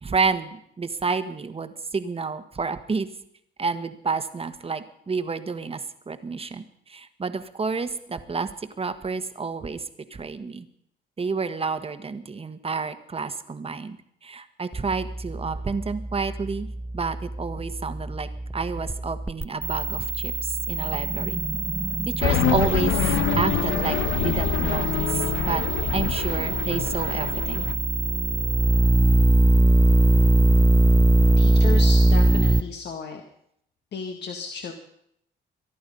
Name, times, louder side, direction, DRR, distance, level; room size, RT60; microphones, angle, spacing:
voice 1, 0.0-3.1 3.6-5.8 6.1-6.6 6.9-8.5 8.8-9.8 10.1-10.7 11.2-14.0 14.2-16.7 16.9-21.4 22.0-22.9 23.4-25.6 25.9-27.6 31.0-31.1, right 4 dB, 30° right, 10 dB, 1.5 m, -29 dB
sound 1, 14.7-32.6, right 2 dB, 10° right, 0.6 m, -22 dB
sound 2, 22.2-27.7, left 8 dB, 80° left, 1.3 m, -25 dB
voice 2, 31.4-33.2 33.9-34.7, left 5 dB, 60° left, 3 dB, 1.8 m, -33 dB
23.5 x 11.0 x 5.5 m, 0.73 s
cardioid pair, 90°, 20 cm